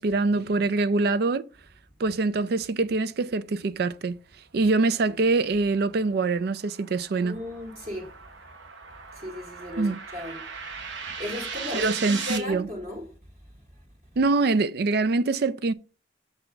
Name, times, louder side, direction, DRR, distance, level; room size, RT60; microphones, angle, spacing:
voice 1, 0.0-1.4 2.0-4.2 4.5-7.4 9.8-10.0 11.7-12.7 14.2-15.7, right 3 dB, 60° right, 0.4 m, -24 dB
sound 1, 5.5-12.4, right 5 dB, 75° right, 1.0 m, -38 dB
voice 2, 7.2-8.1 9.1-10.5 11.0-13.1, left 1 dB, 35° right, 1.5 m, -36 dB
6.7 x 4.1 x 4.6 m
head